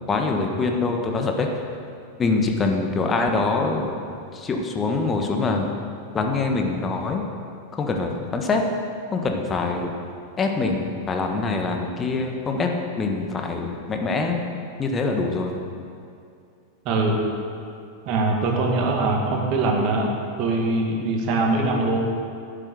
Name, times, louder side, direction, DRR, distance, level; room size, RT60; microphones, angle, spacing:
voice 1, 0.1-1.6 2.2-3.9 4.3-5.7 6.1-7.2 7.7-8.6 9.1-9.9 10.4-14.4 14.8-15.6, left 3 dB, 20° left, 3 dB, 1.4 m, -24 dB
voice 2, 16.8-17.2 18.1-20.1 20.4-22.0, right 2 dB, 40° right, 0 dB, 2.1 m, -22 dB
10.5 x 9.1 x 6.7 m, 2.4 s
figure-of-eight pair, 90°, 0 cm